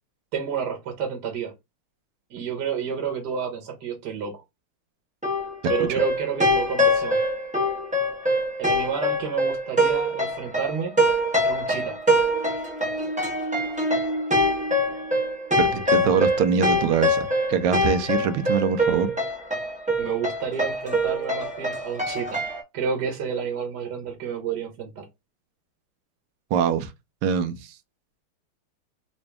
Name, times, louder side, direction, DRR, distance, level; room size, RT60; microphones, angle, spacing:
voice 1, 0.3-1.5 2.3-4.4 5.7-7.2 8.6-10.9 11.4-12.0 20.0-22.4 22.7-25.1, right 6 dB, 60° right, 1.4 m, -30 dB
sound 1, 5.2-22.6, equal, 10° right, 0.4 m, -24 dB
voice 2, 15.6-19.1 26.5-26.9 27.2-27.7, right 7 dB, 85° right, 1.5 m, -23 dB
4.0 x 2.6 x 3.3 m
omnidirectional pair, 2.3 m